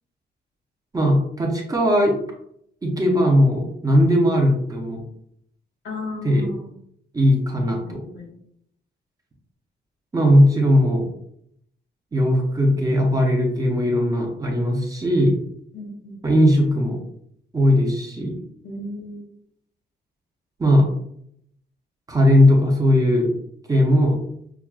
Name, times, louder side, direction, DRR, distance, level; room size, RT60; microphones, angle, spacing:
voice 1, 0.9-2.1 2.8-5.0 6.2-6.4 7.1-8.0 10.1-11.1 12.1-15.4 16.2-17.0 17.5-18.4 20.6-20.9 22.1-23.3 23.7-24.2, equal, 20° right, 0 dB, 0.6 m, -18 dB
voice 2, 5.8-6.7 7.6-8.3 15.7-16.2 18.6-19.2, left 1 dB, 75° left, 0 dB, 1.3 m, -35 dB
5.9 x 2.3 x 2.3 m, 0.70 s
wide cardioid pair, 170°, 19 cm